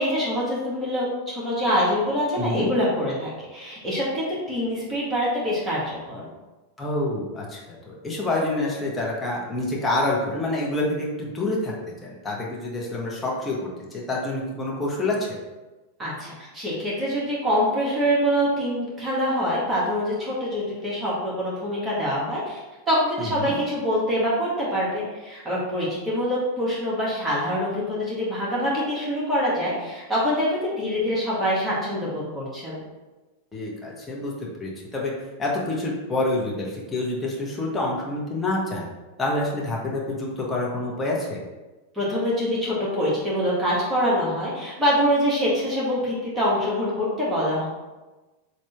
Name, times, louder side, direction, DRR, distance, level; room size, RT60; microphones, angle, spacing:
voice 1, 0.0-6.3 16.0-32.8 41.9-47.7, equal, 15° right, -7 dB, 2.0 m, -25 dB
voice 2, 2.4-2.7 6.8-11.7 12.0-15.3 23.2-23.6 33.5-34.3 34.6-35.1 35.4-38.9 39.2-41.4, left 2 dB, 10° left, -4 dB, 1.4 m, -27 dB
7.3 x 3.2 x 4.5 m, 1.2 s
figure-of-eight pair, 90°, 0 cm